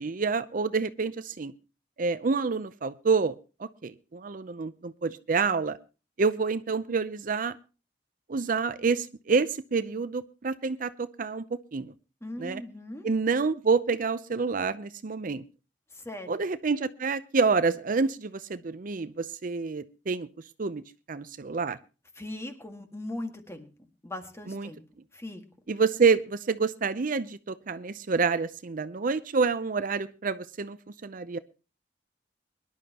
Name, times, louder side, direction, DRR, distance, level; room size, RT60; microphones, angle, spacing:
voice 1, 0.0-1.5 2.0-3.3 3.6-5.8 6.2-7.6 8.3-11.9 12.4-12.6 13.0-15.4 16.3-20.3 20.6-20.8 21.1-21.8 24.5-24.7 25.7-30.8 31.0-31.4, right 4 dB, 50° right, 14 dB, 0.6 m, -28 dB
voice 2, 12.2-13.1 15.9-16.4 22.1-23.7 24.0-24.8 25.1-25.4, left 1 dB, 15° left, 6 dB, 1.7 m, -39 dB
23.0 x 11.5 x 2.9 m, 0.32 s
head